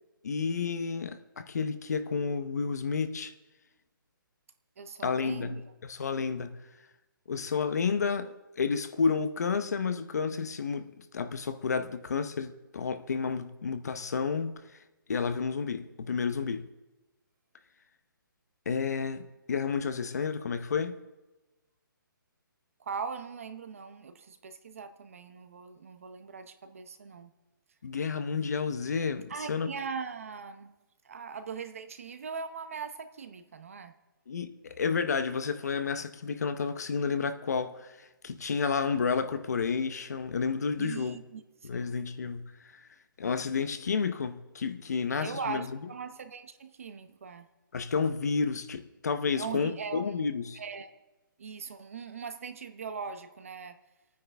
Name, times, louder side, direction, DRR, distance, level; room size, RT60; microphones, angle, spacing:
voice 1, 0.2-3.3 5.0-6.6 7.3-14.6 15.1-16.7 18.7-21.0 27.8-29.7 34.3-41.2 41.6-42.4 43.2-45.7 47.7-50.6, left 5 dB, 50° left, 0.8 m, -31 dB
voice 2, 4.8-5.6 22.8-27.3 29.3-30.8 31.0-33.9 40.8-42.0 45.1-47.5 49.4-50.1 50.5-50.9 51.4-53.8, right 5 dB, 40° right, 0.8 m, -40 dB
27.0 x 9.5 x 3.4 m
hypercardioid pair, 180°, 12 cm